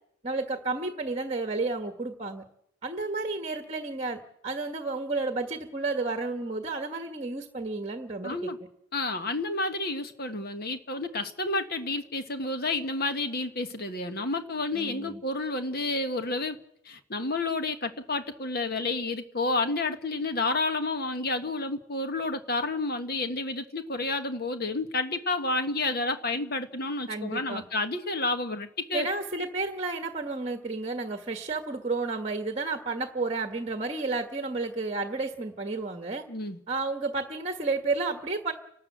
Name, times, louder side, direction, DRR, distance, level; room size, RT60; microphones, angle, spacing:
voice 1, 0.2-2.4 2.8-8.4 14.7-15.2 27.1-27.7 28.9-36.2 36.7-38.5, right 3 dB, 30° right, 6 dB, 1.4 m, -31 dB
voice 2, 8.2-8.6 8.9-16.6 16.8-29.1 36.3-36.6, left 2 dB, 50° left, 8 dB, 1.5 m, -30 dB
30.0 x 13.0 x 7.9 m, 0.79 s
head